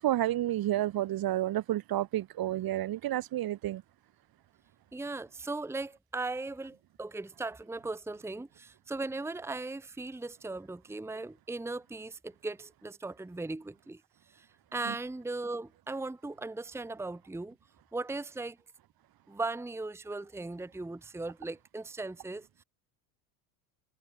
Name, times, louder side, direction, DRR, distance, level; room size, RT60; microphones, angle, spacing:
voice 1, 0.0-3.8 14.9-15.0, right 14 dB, 45° right, 1.7 m, -30 dB
voice 2, 4.9-14.0 14.3-17.6 17.9-18.6 19.3-22.6, right 3 dB, 5° right, 1.2 m, -38 dB
hypercardioid pair, 85°, 49 cm